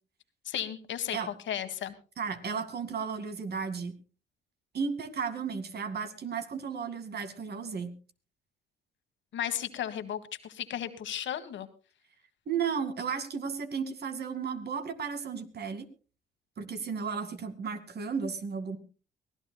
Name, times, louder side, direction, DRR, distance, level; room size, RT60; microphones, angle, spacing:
voice 1, 0.4-1.9 9.3-11.7, left 10 dB, 70° left, 10 dB, 1.6 m, -35 dB
voice 2, 2.2-4.0 4.7-7.9 12.5-15.9 16.6-18.8, right 6 dB, 55° right, 9 dB, 2.2 m, -34 dB
23.5 x 16.5 x 2.3 m, 0.35 s
cardioid pair, 90°, 20 cm